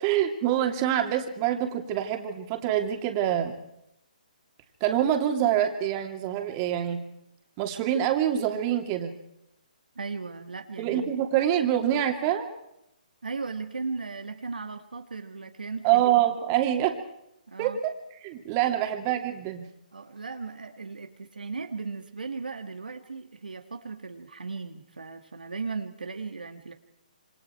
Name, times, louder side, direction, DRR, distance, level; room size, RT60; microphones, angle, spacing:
voice 1, 0.0-3.5 4.8-7.0 7.6-9.1 10.8-12.5 15.8-17.0 17.6-17.9 18.2-19.6, right 11 dB, 30° right, 4 dB, 2.8 m, -25 dB
voice 2, 10.0-11.1 13.2-16.3 17.5-17.8 19.9-26.7, right 4 dB, 80° right, 5 dB, 1.9 m, -37 dB
27.0 x 25.0 x 4.6 m, 0.83 s
figure-of-eight pair, 140°, 5 cm